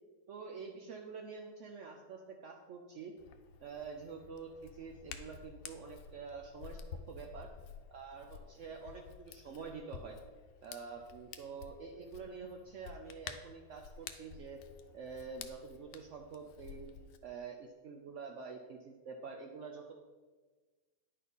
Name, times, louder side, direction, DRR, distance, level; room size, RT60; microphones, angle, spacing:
voice 1, 0.3-3.1 3.6-6.8 7.1-7.5 7.9-10.2 10.6-14.6 14.9-16.9 17.2-19.9, right 5 dB, 75° right, 3 dB, 0.7 m, -47 dB
Hands, 3.2-17.2, left 7 dB, 80° left, 1.3 m, -51 dB
10.0 x 4.2 x 5.3 m, 1.3 s
omnidirectional pair, 2.0 m